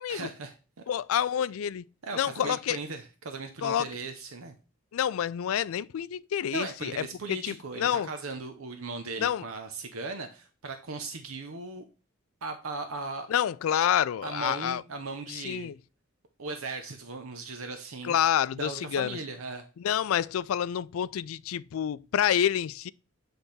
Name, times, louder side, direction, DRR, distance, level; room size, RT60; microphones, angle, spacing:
voice 1, 0.1-0.8 2.0-4.5 6.5-11.8 12.4-13.3 14.2-15.7 16.4-18.2 18.6-19.6, right 3 dB, 85° right, 0.8 m, -38 dB
voice 2, 0.9-1.8 2.2-2.8 3.6-3.9 4.9-8.1 9.2-9.4 13.3-14.8 15.3-15.8 18.0-19.2 19.8-22.9, left 9 dB, 85° left, 0.3 m, -28 dB
8.0 x 3.4 x 4.1 m
head